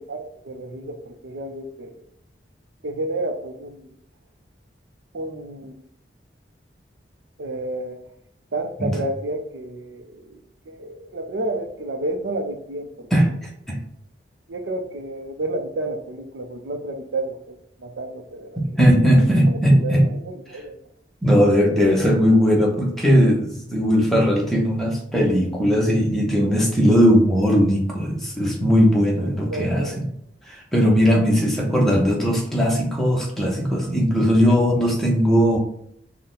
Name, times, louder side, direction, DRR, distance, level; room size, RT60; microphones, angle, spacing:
voice 1, 0.0-2.0 2.8-3.9 5.1-5.8 7.4-8.0 8.5-10.4 10.7-13.1 14.5-18.6 19.0-20.8 29.2-30.1, right 2 dB, 85° right, 6 dB, 0.6 m, -31 dB
voice 2, 13.1-13.5 18.6-20.0 21.2-30.0 30.5-35.6, equal, ahead, -2 dB, 0.8 m, -18 dB
4.1 x 2.1 x 3.8 m, 0.71 s
head